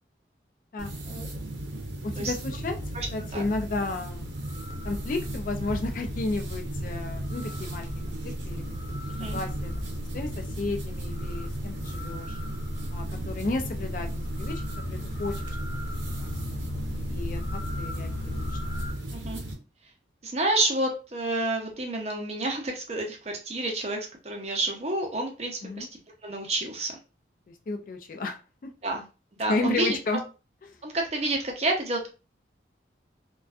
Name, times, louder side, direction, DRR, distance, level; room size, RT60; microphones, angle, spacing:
sound 1, 0.8-19.5, right 1 dB, 90° right, 0.7 m, -36 dB
voice 1, 2.0-2.8 3.1-4.3 4.8-9.7 10.1-12.4 12.9-14.1 14.4-15.3 15.7-16.3 16.7-18.5 25.6-25.9 27.7-28.7 29.5-30.2, left 3 dB, 45° left, 5 dB, 0.3 m, -33 dB
sound 2, 4.1-18.9, left 1 dB, 70° left, 1.0 m, -37 dB
voice 2, 20.2-25.9 26.2-26.9 28.8-29.0 29.4-30.0 30.8-32.1, right 2 dB, 35° right, 2 dB, 0.6 m, -29 dB
2.5 x 2.3 x 2.3 m, 0.32 s
head